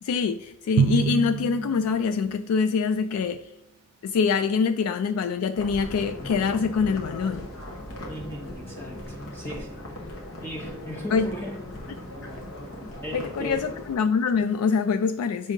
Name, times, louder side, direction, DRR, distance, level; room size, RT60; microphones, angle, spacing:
voice 1, 0.0-3.5 4.0-7.5 11.1-11.3 13.1-15.5, left 5 dB, 85° left, 10 dB, 0.3 m, -25 dB
Drum, 0.8-2.5, right 6 dB, 80° right, 0.4 m, -26 dB
sound 1, 5.5-14.0, left 1 dB, 60° left, 1.1 m, -38 dB
voice 2, 8.1-9.8 10.4-11.6 13.0-13.7, equal, 10° left, -1 dB, 0.5 m, -37 dB
7.1 x 2.7 x 5.2 m, 0.85 s
head